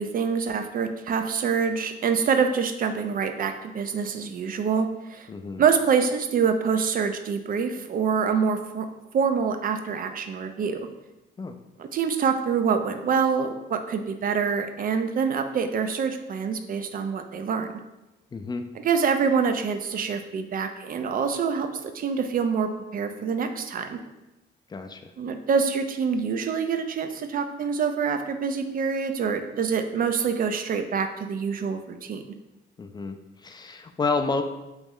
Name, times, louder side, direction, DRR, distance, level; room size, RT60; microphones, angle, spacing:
voice 1, 0.0-5.3 5.6-8.9 9.1-10.9 11.8-17.7 18.8-24.0 25.2-32.2, right 6 dB, 45° right, 8 dB, 0.4 m, -26 dB
voice 2, 5.3-5.6 11.4-11.6 18.3-18.6 24.7-25.1 32.8-34.4, left 4 dB, 20° left, 7 dB, 0.3 m, -30 dB
3.1 x 3.0 x 3.7 m, 1.0 s
cardioid pair, 90°, 20 cm